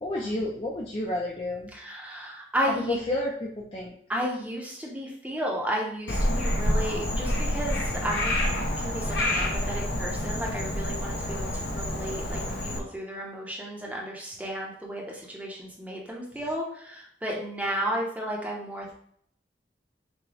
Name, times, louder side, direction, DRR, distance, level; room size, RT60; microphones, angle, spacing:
voice 1, 0.0-1.7 2.7-3.9, left 1 dB, 30° left, -2 dB, 0.5 m, -30 dB
voice 2, 1.7-3.0 4.1-8.3 8.8-18.9, equal, 10° right, -2 dB, 0.8 m, -33 dB
Frog, 6.1-12.8, left 1 dB, 80° left, 0.8 m, -28 dB
6.0 x 2.2 x 3.4 m, 0.63 s
head